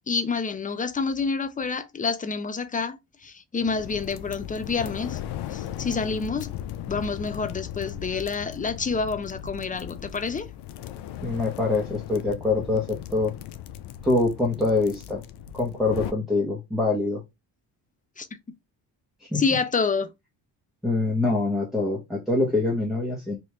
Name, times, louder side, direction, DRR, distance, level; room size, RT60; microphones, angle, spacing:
voice 1, 0.1-5.2 5.5-6.5 6.9-10.5 18.2-18.3 19.3-20.1, left 4 dB, 20° left, 0.6 m, -28 dB
sound 1, 3.6-16.1, left 10 dB, 80° left, 0.5 m, -37 dB
voice 2, 11.2-13.3 14.0-15.2 15.5-17.2 19.2-19.4 20.8-23.4, left 3 dB, ahead, 0.9 m, -24 dB
3.0 x 2.5 x 3.2 m
cardioid pair, 90°, 40 cm